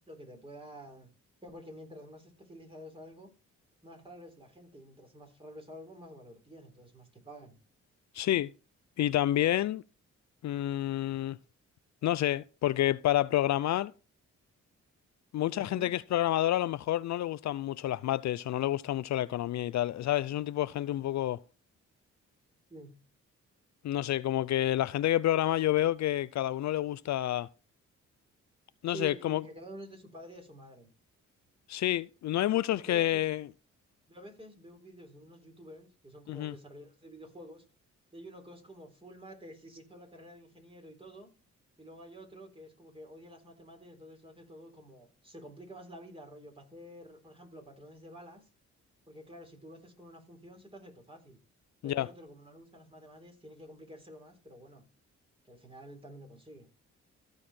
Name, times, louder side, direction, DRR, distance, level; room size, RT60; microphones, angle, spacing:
voice 1, 0.1-1.1 1.4-3.3 3.8-7.6 15.5-15.9 20.7-20.8 22.7-23.0 28.9-30.9 32.7-33.3 34.1-37.6 38.1-41.3 41.8-48.5 49.1-51.4 51.8-54.8 55.4-56.7, equal, 20° right, 3.7 m, -49 dB
voice 2, 8.1-8.5 9.0-9.8 10.4-11.4 12.0-13.9 15.3-21.4 23.8-27.5 28.8-29.4 31.7-33.5 36.3-36.5 51.8-52.1, left 13 dB, 65° left, 0.5 m, -29 dB
14.5 x 4.8 x 4.3 m
cardioid pair, 70°, 30 cm